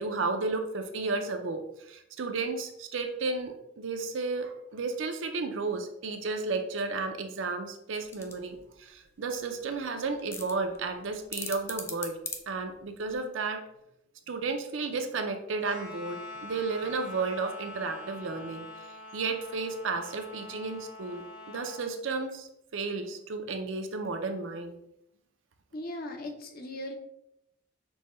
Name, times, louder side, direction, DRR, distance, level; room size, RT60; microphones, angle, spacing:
voice 1, 0.0-12.2 12.5-13.6 14.3-18.7 19.1-24.7, right 3 dB, 75° right, 6 dB, 0.5 m, -33 dB
sound 1, 8.0-13.2, left 4 dB, 15° left, 0.4 m, -42 dB
sound 2, 15.6-21.9, left 2 dB, 85° left, 1.3 m, -44 dB
voice 2, 25.7-27.0, left 1 dB, 50° left, 3 dB, 0.7 m, -38 dB
6.1 x 2.2 x 3.1 m, 0.77 s
head